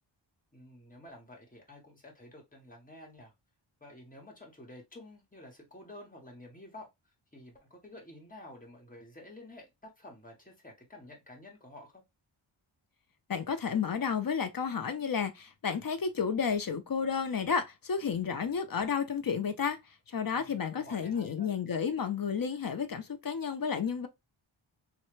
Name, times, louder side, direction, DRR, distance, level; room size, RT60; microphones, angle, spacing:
voice 1, 0.5-3.3 3.8-6.9 7.3-12.0 20.3-21.6, left 1 dB, 15° left, 1.2 m, -51 dB
voice 2, 13.3-19.8 20.1-24.1, left 6 dB, 45° left, 0.5 m, -31 dB
3.1 x 2.1 x 3.0 m
wide cardioid pair, 100°, 49 cm